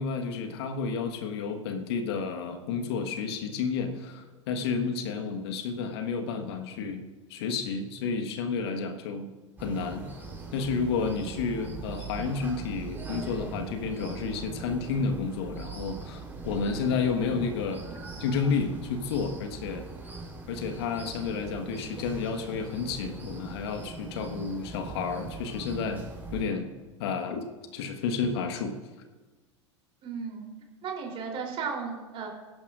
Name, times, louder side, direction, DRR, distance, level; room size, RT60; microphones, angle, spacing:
voice 1, 0.0-9.3 9.6-10.1 10.5-17.9 18.2-20.1 20.5-26.0 26.3-26.7 27.0-28.8, left 5 dB, 55° left, 6 dB, 1.5 m, -31 dB
sound 1, 9.6-26.4, right 3 dB, 10° right, 3.8 m, -41 dB
voice 2, 30.0-30.5 30.8-32.3, right 5 dB, 35° right, 1 dB, 3.5 m, -35 dB
22.0 x 11.5 x 2.6 m, 1.2 s
figure-of-eight pair, 80°, 16 cm